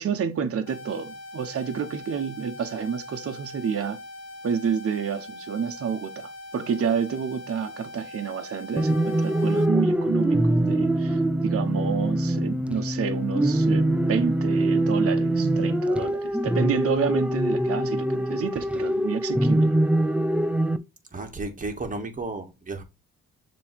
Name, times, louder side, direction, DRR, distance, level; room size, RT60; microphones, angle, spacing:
voice 1, 0.0-4.0 4.4-19.7, right 7 dB, 50° right, 1.2 m, -29 dB
sound 1, 0.7-9.7, left 2 dB, 55° left, 1.2 m, -42 dB
sound 2, 8.8-20.8, right 1 dB, 5° right, 0.6 m, -23 dB
voice 2, 21.1-22.8, right 3 dB, 25° right, 2.0 m, -33 dB
6.9 x 3.2 x 4.8 m
cardioid pair, 90°, 30 cm